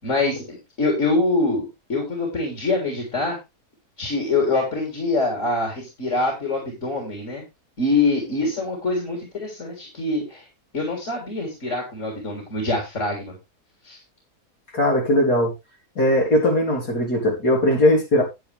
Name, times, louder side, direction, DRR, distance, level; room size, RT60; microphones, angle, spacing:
voice 1, 0.0-3.4 4.0-7.4 7.8-10.4 10.7-13.3 13.8-14.0, left 3 dB, 50° left, 0 dB, 3.9 m, -24 dB
voice 2, 14.7-15.5 16.0-18.2, left 1 dB, 75° left, -2 dB, 4.2 m, -19 dB
10.5 x 9.4 x 3.5 m, 0.24 s
omnidirectional pair, 1.7 m